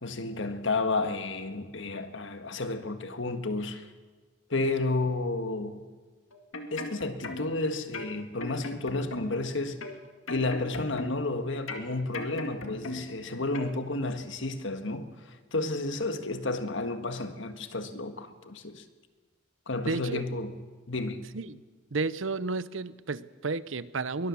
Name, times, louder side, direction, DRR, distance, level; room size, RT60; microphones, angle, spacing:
voice 1, 0.0-3.9 4.5-5.8 6.7-9.8 10.3-15.1 15.5-18.8 19.7-20.6 20.9-21.2, left 2 dB, 70° left, 1.7 m, -31 dB
sound 1, 6.3-7.6 7.9-9.5 9.8-11.3 11.7-13.2 13.5-13.7, left 2 dB, 90° left, 2.1 m, -38 dB
voice 2, 19.8-20.2 21.3-21.6 21.9-24.3, right 3 dB, 75° right, 0.8 m, -32 dB
23.0 x 19.0 x 7.1 m
head